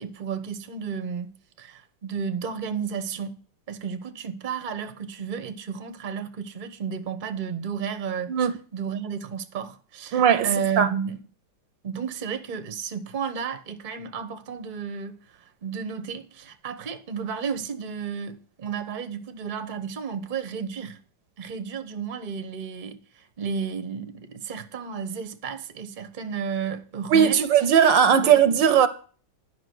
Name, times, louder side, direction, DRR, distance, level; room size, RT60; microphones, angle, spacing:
voice 1, 0.0-3.4 3.7-8.3 8.7-11.2 11.8-21.0 21.4-27.5 28.2-28.6, right 6 dB, 30° right, 1.0 m, -32 dB
voice 2, 10.1-10.5 10.8-10.9 27.1-28.9, right 8 dB, 75° right, 1.5 m, -18 dB
11.0 x 5.5 x 7.9 m
omnidirectional pair, 2.1 m